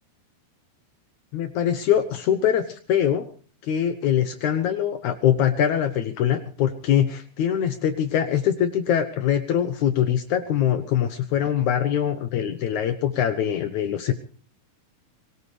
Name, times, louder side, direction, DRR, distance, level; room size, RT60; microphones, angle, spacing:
voice 1, 1.3-2.6 2.9-3.2 3.6-14.1, left 9 dB, 70° left, 9 dB, 1.8 m, -23 dB
23.5 x 18.0 x 3.3 m, 0.43 s
omnidirectional pair, 4.5 m